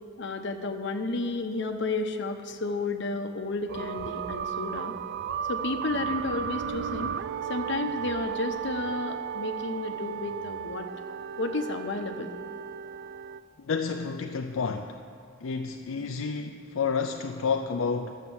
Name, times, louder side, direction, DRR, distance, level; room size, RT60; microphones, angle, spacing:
voice 1, 0.2-4.9 5.5-7.2 7.5-10.9 11.4-12.3, left 2 dB, 60° left, 5 dB, 0.9 m, -32 dB
sound 1, 3.7-13.4, right 8 dB, 55° right, 0.3 m, -35 dB
voice 2, 13.6-15.0 15.4-18.1, left 5 dB, 75° left, 4 dB, 0.5 m, -30 dB
12.0 x 7.4 x 7.1 m, 2.4 s
head